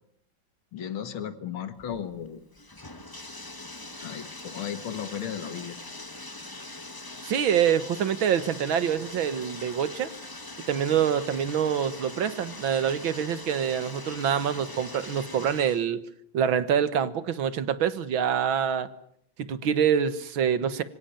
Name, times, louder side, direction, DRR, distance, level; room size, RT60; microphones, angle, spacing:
voice 1, 0.7-2.4 4.0-5.8, left 9 dB, 90° left, 11 dB, 2.5 m, -35 dB
Bathtub (filling or washing), 1.8-15.8, left 2 dB, 15° left, 1.1 m, -42 dB
voice 2, 7.2-10.1 10.7-16.0 16.3-18.9 19.4-20.8, right 8 dB, 75° right, 14 dB, 2.1 m, -26 dB
25.5 x 17.0 x 8.8 m, 0.72 s
omnidirectional pair, 2.2 m